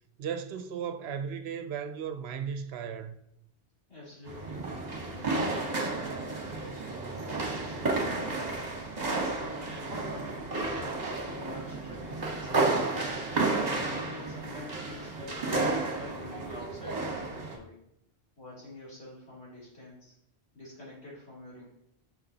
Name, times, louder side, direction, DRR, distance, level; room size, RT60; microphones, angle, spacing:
voice 1, 0.2-3.2, right 7 dB, 75° right, 0.8 m, -36 dB
voice 2, 3.9-4.6 5.1-6.8 7.5-8.6 9.0-10.8 11.2-12.8 13.6-15.5 15.9-17.8 18.4-20.1 20.5-21.7, left 1 dB, 70° left, 3.1 m, -47 dB
sound 1, 4.3-17.6, right 3 dB, 40° right, 1.2 m, -32 dB
6.7 x 5.8 x 2.7 m
omnidirectional pair, 1.1 m